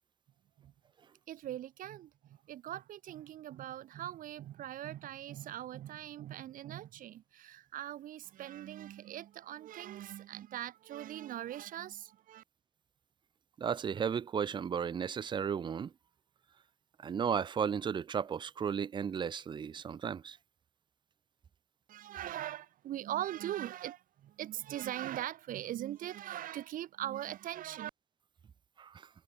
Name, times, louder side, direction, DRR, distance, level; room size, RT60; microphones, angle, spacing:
voice 1, 1.3-12.4 21.9-27.9, right 12 dB, 80° right, 2.1 m, -41 dB
voice 2, 13.6-15.9 17.0-20.4 28.8-29.1, right 7 dB, 35° right, 0.6 m, -34 dB
cardioid pair, 135°, 14 cm